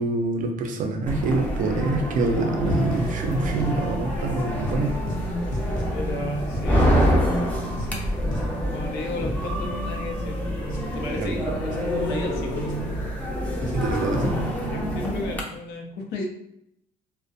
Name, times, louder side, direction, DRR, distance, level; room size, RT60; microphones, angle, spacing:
voice 1, 0.0-4.9 11.1-11.4 13.7-14.3, right 2 dB, 50° right, 4 dB, 0.5 m, -26 dB
sound 1, 1.1-15.4, equal, 10° left, 0.5 m, -26 dB
sound 2, 2.6-14.4, left 1 dB, 50° left, 0.7 m, -38 dB
voice 2, 5.9-7.1 8.2-10.3 10.6-12.8 14.7-16.3, left 2 dB, 85° left, 2 dB, 0.6 m, -34 dB
2.4 x 2.0 x 2.6 m, 0.76 s
cardioid pair, 110°, 17 cm